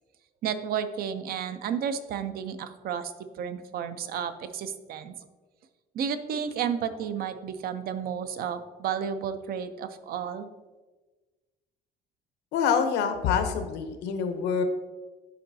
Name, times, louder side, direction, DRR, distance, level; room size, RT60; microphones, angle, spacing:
voice 1, 0.4-5.1 5.9-10.5, right 7 dB, 65° right, 11 dB, 0.6 m, -32 dB
voice 2, 12.5-14.6, left 7 dB, 85° left, 7 dB, 0.8 m, -26 dB
10.5 x 4.6 x 2.7 m, 1.3 s
cardioid pair, 110°, 17 cm